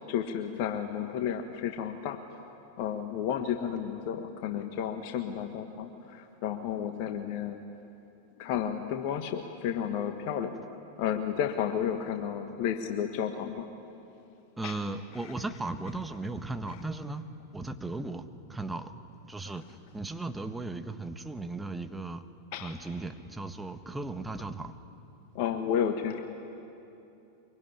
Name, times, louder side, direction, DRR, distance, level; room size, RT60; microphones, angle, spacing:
voice 1, 0.1-2.2 2.8-7.6 8.4-10.6 11.0-13.6 14.6-14.8 15.2-15.3 16.7-16.8 22.5-22.7 25.3-26.2, left 8 dB, 45° left, 6 dB, 1.4 m, -32 dB
voice 2, 14.6-17.2 17.5-18.9 19.3-22.2 22.6-24.7, right 2 dB, 10° right, 8 dB, 1.4 m, -36 dB
24.0 x 23.0 x 10.0 m, 2.8 s
figure-of-eight pair, 90°, 0 cm